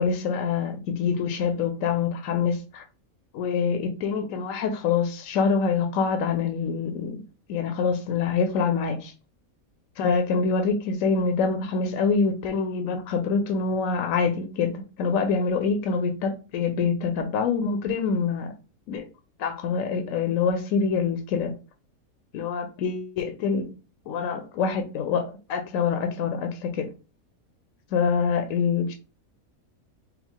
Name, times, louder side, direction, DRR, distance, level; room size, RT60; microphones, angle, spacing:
voice 1, 0.0-2.8 3.3-7.2 7.5-9.1 10.0-18.5 18.9-19.0 19.4-21.5 22.3-23.7 24.1-26.9 27.9-28.9, left 5 dB, 70° left, 1.0 m, -25 dB
4.6 x 2.0 x 3.6 m
omnidirectional pair, 1.5 m